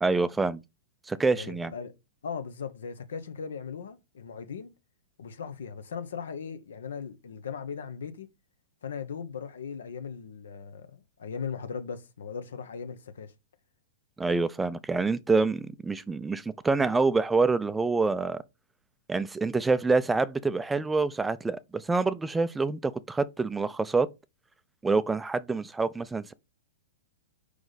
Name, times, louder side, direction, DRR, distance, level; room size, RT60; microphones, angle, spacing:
voice 1, 0.0-0.6 1.1-1.7 14.2-18.4 19.1-24.1 24.8-26.3, right 3 dB, 10° right, 0.3 m, -26 dB
voice 2, 1.3-1.9 2.2-4.7 5.2-8.3 8.8-13.3, left 6 dB, 85° left, 1.0 m, -38 dB
5.1 x 4.9 x 4.0 m
hypercardioid pair, 145°, 0 cm